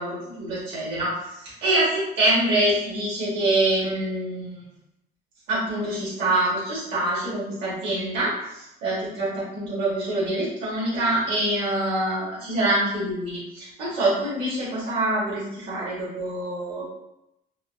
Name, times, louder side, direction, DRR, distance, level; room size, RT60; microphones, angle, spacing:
voice 1, 0.0-4.6 5.5-16.9, right 1 dB, 90° right, -8 dB, 1.5 m, -25 dB
4.0 x 2.5 x 2.2 m, 0.85 s
cardioid pair, 110°, 17 cm